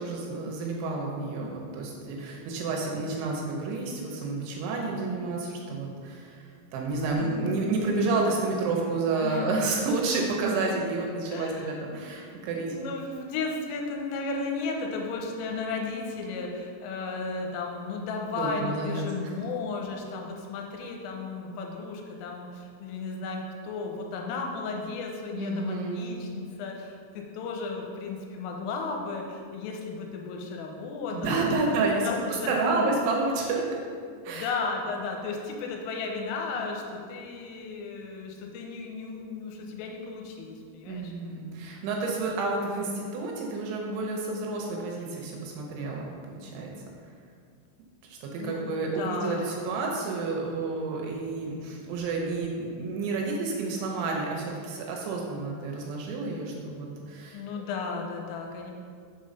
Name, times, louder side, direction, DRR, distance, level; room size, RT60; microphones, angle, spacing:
voice 1, 0.0-12.7 18.4-19.0 25.4-26.0 31.1-32.1 32.5-33.6 34.2-34.5 40.9-46.7 48.0-57.4, right 3 dB, 80° right, -1 dB, 3.0 m, -30 dB
voice 2, 7.2-8.3 9.2-9.6 11.3-11.7 12.2-12.3 12.6-31.7 32.0-32.9 34.3-41.1 48.4-49.7 57.3-58.7, left 4 dB, 85° left, 1 dB, 3.3 m, -34 dB
7.0 x 3.8 x 5.2 m, 2.1 s
omnidirectional pair, 5.8 m